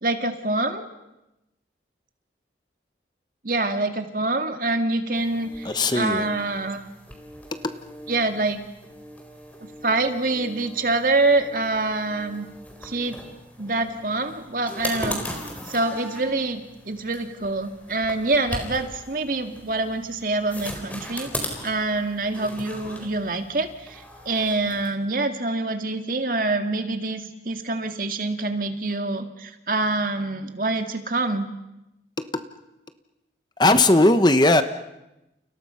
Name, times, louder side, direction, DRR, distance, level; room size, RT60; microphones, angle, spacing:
voice 1, 0.0-0.9 3.4-6.8 8.1-8.6 9.6-12.5 12.8-13.2 13.6-15.2 15.7-31.5, right 2 dB, 50° right, 6 dB, 2.2 m, -26 dB
sound 1, 5.1-24.9, left 1 dB, 10° left, 4.2 m, -39 dB
voice 2, 5.6-6.3 33.6-34.6, left 2 dB, 25° left, 9 dB, 1.1 m, -17 dB
30.0 x 30.0 x 5.8 m, 0.93 s
head